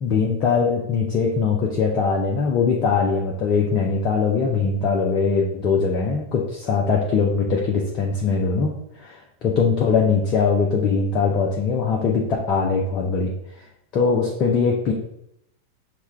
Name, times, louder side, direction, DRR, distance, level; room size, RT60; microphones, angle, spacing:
voice 1, 0.0-8.7 9.0-12.2 12.5-13.3 13.9-14.9, left 5 dB, 35° left, -1 dB, 0.6 m, -21 dB
5.8 x 2.3 x 3.2 m, 0.77 s
figure-of-eight pair, 90°, 0 cm